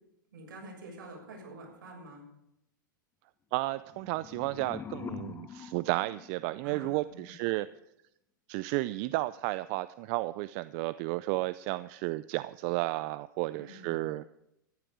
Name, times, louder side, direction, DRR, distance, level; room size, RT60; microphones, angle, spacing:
voice 1, 0.3-2.2 6.6-7.0 7.3-7.4 13.5-14.1, right 2 dB, 70° right, -1 dB, 6.5 m, -47 dB
voice 2, 3.5-7.7 8.5-14.2, right 19 dB, 50° right, 15 dB, 0.4 m, -32 dB
sound 1, 3.8-6.9, left 7 dB, 20° left, 0.6 m, -44 dB
14.0 x 11.5 x 5.0 m, 0.82 s
hypercardioid pair, 110°, 11 cm